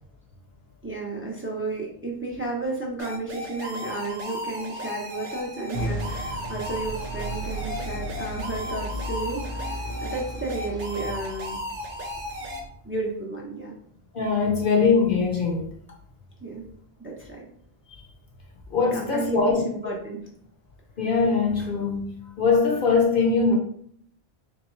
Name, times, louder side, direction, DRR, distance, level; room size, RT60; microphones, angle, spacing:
voice 1, 0.8-11.6 12.8-13.7 16.4-16.7 17.0-17.4 18.9-20.2, right 3 dB, 15° right, 0.5 m, -32 dB
sound 1, 3.0-12.6, equal, 60° right, 0.8 m, -35 dB
sound 2, 5.7-12.7, equal, 80° left, 1.3 m, -35 dB
voice 2, 14.1-15.6 17.9-18.0 18.7-19.6 21.0-23.6, left 4 dB, 60° left, 0.9 m, -22 dB
3.5 x 3.1 x 3.1 m
omnidirectional pair, 1.1 m